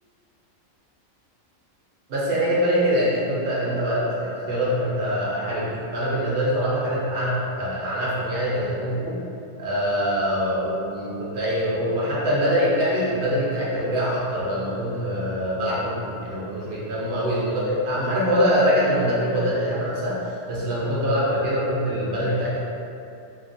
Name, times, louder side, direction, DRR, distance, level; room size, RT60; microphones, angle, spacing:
voice 1, 2.1-9.2 9.6-22.6, equal, 55° right, -6 dB, 0.8 m, -24 dB
2.9 x 2.5 x 2.5 m, 2.6 s
omnidirectional pair, 1.4 m